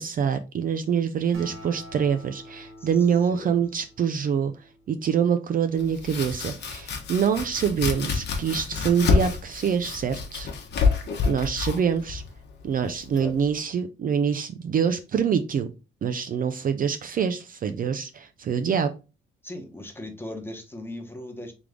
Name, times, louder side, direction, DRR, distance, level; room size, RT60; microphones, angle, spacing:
voice 1, 0.0-4.5 4.9-10.5 11.2-12.2 12.6-15.7 16.0-18.9, right 7 dB, 45° right, 0.4 m, -25 dB
Acoustic guitar, 1.3-5.1, equal, 85° right, 1.6 m, -46 dB
Domestic sounds home sounds, 5.8-13.5, left 5 dB, 60° left, 1.0 m, -28 dB
voice 2, 19.4-21.5, left 1 dB, 10° left, 1.0 m, -38 dB
3.4 x 3.3 x 3.6 m
cardioid pair, 90°, 20 cm